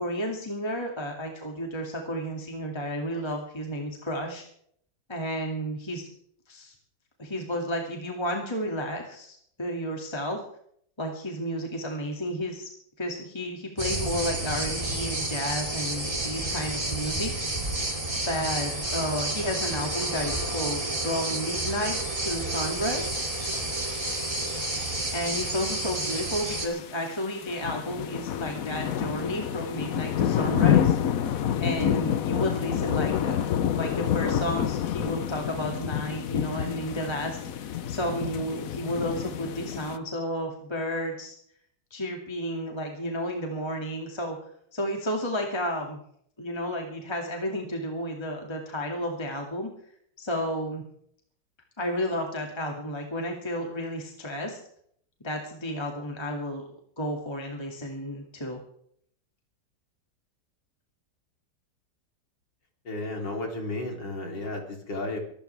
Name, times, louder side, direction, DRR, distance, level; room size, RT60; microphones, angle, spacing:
voice 1, 0.0-4.4 5.1-6.1 6.5-6.7 7.2-10.4 11.0-12.7 13.0-17.3 18.3-23.2 25.1-31.0 31.6-41.4 41.9-46.0 46.4-49.7 50.2-50.8 51.8-54.6 55.2-56.6 57.0-58.6, equal, 15° left, 1 dB, 2.2 m, -32 dB
sound 1, 13.8-26.7, right 2 dB, 20° right, 2.6 m, -30 dB
sound 2, 22.8-40.0, left 9 dB, 60° left, 1.1 m, -29 dB
voice 2, 62.8-65.2, left 2 dB, 80° left, 2 dB, 4.0 m, -33 dB
23.0 x 13.5 x 3.4 m, 0.64 s
omnidirectional pair, 1.9 m